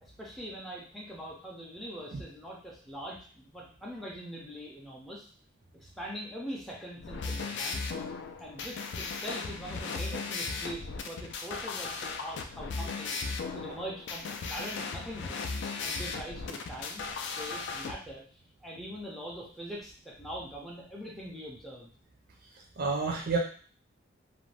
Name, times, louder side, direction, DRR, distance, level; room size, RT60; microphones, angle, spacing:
voice 1, 0.0-5.3 5.7-7.8 8.4-13.2 13.5-15.5 15.8-18.2 18.6-21.9, equal, ahead, -4 dB, 0.5 m, -42 dB
sound 1, 7.0-17.9, left 4 dB, 60° left, 0.3 m, -36 dB
voice 2, 22.8-23.4, right 4 dB, 50° right, 0 dB, 0.5 m, -30 dB
2.5 x 2.2 x 3.2 m, 0.43 s
head